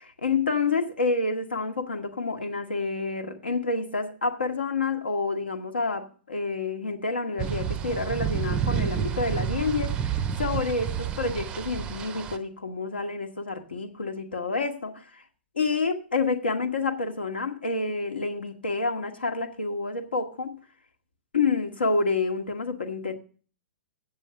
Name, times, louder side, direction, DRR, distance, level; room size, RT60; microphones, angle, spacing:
voice 1, 0.0-15.2 15.5-20.6 21.3-23.1, left 3 dB, 70° left, 1.3 m, -28 dB
sound 1, 7.4-12.4, right 8 dB, 15° right, 0.5 m, -29 dB
8.3 x 7.2 x 6.5 m
figure-of-eight pair, 110°, 6 cm